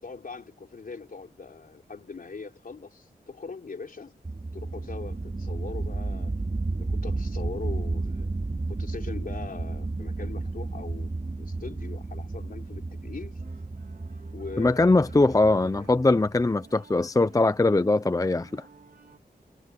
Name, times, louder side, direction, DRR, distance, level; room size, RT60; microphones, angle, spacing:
voice 1, 0.0-4.2 4.5-6.4 6.8-8.3 8.7-11.1 11.4-13.4 14.3-15.9, left 4 dB, 65° left, 4.3 m, -41 dB
sound 1, 4.2-16.6, right 3 dB, 35° right, 3.0 m, -33 dB
sound 2, 13.4-19.2, right 5 dB, 70° right, 3.5 m, -53 dB
voice 2, 14.6-18.7, left 2 dB, 20° left, 0.7 m, -21 dB
wide cardioid pair, 105°, 16 cm